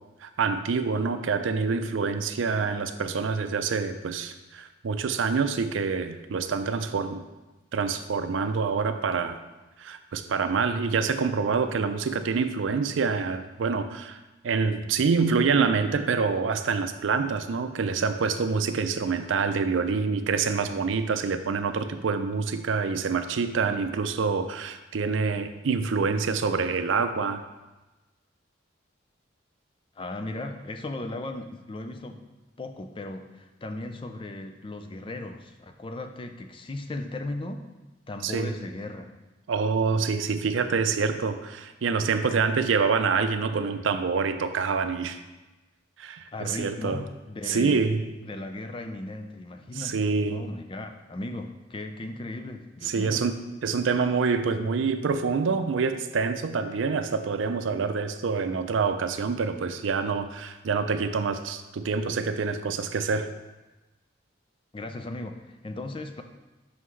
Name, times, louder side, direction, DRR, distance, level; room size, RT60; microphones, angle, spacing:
voice 1, 0.2-7.2 7.7-9.4 9.8-27.4 38.2-38.5 39.5-45.2 46.0-47.0 47.5-48.0 49.8-50.4 52.8-63.3, right 5 dB, 85° right, 9 dB, 0.5 m, -26 dB
voice 2, 30.0-32.2 32.6-37.6 38.1-39.1 46.3-47.8 48.2-53.2 64.7-66.2, left 2 dB, 25° left, 6 dB, 0.4 m, -37 dB
6.0 x 5.6 x 3.2 m, 1.1 s
head